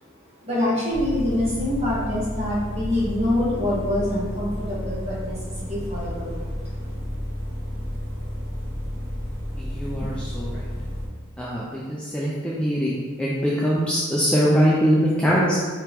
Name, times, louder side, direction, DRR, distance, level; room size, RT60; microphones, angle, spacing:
voice 1, 0.4-6.5, left 1 dB, 30° right, -8 dB, 1.4 m, -25 dB
sound 1, 0.9-11.1, equal, 75° right, 1.1 m, -31 dB
voice 2, 9.6-10.5 11.4-15.6, equal, 5° left, -6 dB, 0.3 m, -22 dB
4.5 x 2.9 x 3.5 m, 1.5 s
head